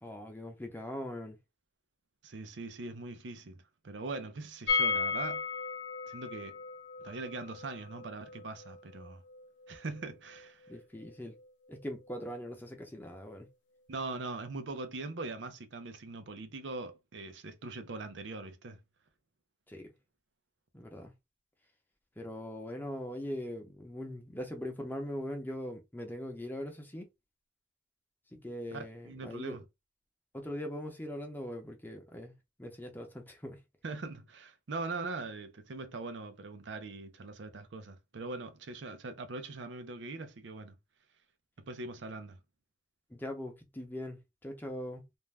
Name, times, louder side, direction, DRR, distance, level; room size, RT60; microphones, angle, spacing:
voice 1, 0.0-1.4 10.7-11.3 11.7-13.5 19.7-19.9 20.7-21.1 22.2-27.1 28.3-29.6 30.3-32.3 32.6-33.6 43.1-45.0, left 1 dB, 10° left, 0.7 m, -41 dB
voice 2, 2.2-5.4 6.1-6.6 7.0-9.2 9.7-10.7 13.9-18.8 28.7-29.6 33.8-40.7 41.7-42.4, right 3 dB, 85° right, 0.6 m, -41 dB
sound 1, 4.7-10.4 10.7-10.8 11.1-11.2, left 4 dB, 85° left, 0.5 m, -35 dB
2.6 x 2.2 x 3.2 m
head